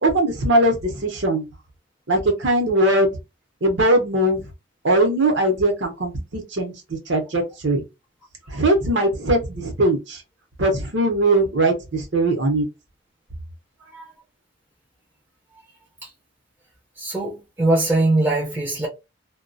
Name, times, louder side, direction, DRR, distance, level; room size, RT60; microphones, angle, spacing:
voice 1, 0.0-1.5 2.1-3.1 3.6-4.4 4.8-7.8 8.5-10.2 10.6-12.7, right 1 dB, 65° right, 0.8 m, -20 dB
voice 2, 17.0-18.9, right 2 dB, 10° right, 0.5 m, -21 dB
2.3 x 2.2 x 2.5 m
head